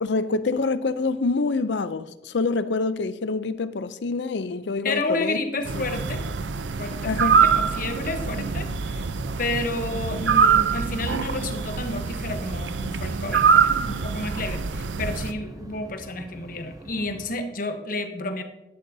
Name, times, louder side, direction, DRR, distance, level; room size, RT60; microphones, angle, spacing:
voice 1, 0.0-5.4 5.8-5.9 7.0-7.4, left 3 dB, 70° left, 0.5 m, -26 dB
voice 2, 4.8-6.2 6.8-9.0 9.4-18.4, left 2 dB, 50° left, 1.1 m, -31 dB
sound 1, 5.7-15.3, right 6 dB, 90° right, 0.6 m, -24 dB
sound 2, 6.6-17.3, right 1 dB, 20° right, 0.6 m, -44 dB
12.0 x 11.5 x 2.7 m
head